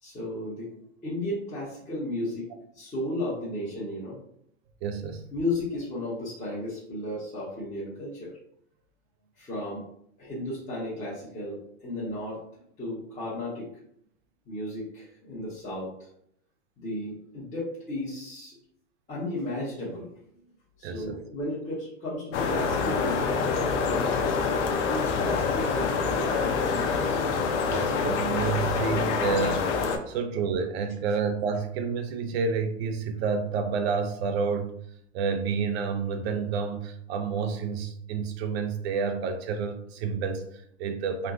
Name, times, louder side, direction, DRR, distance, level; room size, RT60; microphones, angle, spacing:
voice 1, 0.0-4.2 5.3-8.4 9.4-9.8 10.2-13.7 14.5-16.1 16.8-18.6 19.1-20.1 20.8-24.3 24.9-26.8, left 1 dB, 20° left, -9 dB, 1.1 m, -34 dB
voice 2, 4.8-5.2 20.8-21.2 27.7-29.7 30.1-34.7 35.1-41.3, right 5 dB, 60° right, 6 dB, 0.5 m, -29 dB
sound 1, 22.3-30.0, left 5 dB, 70° left, 0.7 m, -26 dB
3.5 x 2.2 x 2.4 m, 0.68 s
hypercardioid pair, 115°, 36 cm